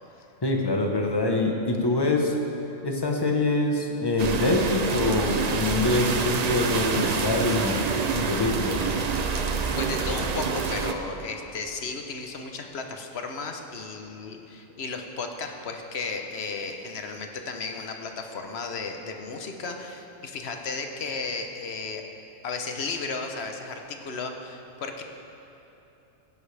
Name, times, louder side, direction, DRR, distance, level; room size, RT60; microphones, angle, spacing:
voice 1, 0.4-2.3 2.8-7.8 8.1-8.8, left 2 dB, 20° left, 1 dB, 1.0 m, -24 dB
sound 1, 4.2-10.9, right 5 dB, 50° right, 0.5 m, -27 dB
voice 2, 9.8-22.0 22.4-25.0, left 4 dB, 55° left, 4 dB, 1.1 m, -34 dB
16.5 x 10.5 x 3.4 m, 2.9 s
omnidirectional pair, 1.3 m